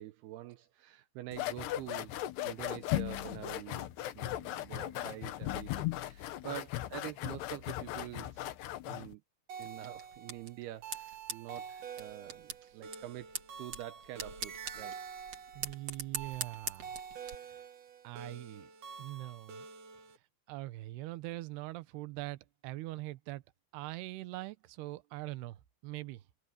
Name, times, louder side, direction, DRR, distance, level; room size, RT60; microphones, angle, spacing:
voice 1, 0.0-2.2 2.4-3.9 4.1-8.5 8.9-9.2 9.6-15.0, right 14 dB, 90° right, 2.2 m, -46 dB
sound 1, 1.3-9.1, left 14 dB, 70° left, 2.9 m, -37 dB
sound 2, 9.5-20.2, right 7 dB, 55° right, 2.4 m, -47 dB
sound 3, 9.6-17.3, right 6 dB, 40° right, 2.7 m, -44 dB
voice 2, 15.6-16.9 18.0-18.7 19.0-19.7 20.5-23.4 23.7-26.2, right 18 dB, 75° right, 2.6 m, -42 dB
omnidirectional pair, 5.6 m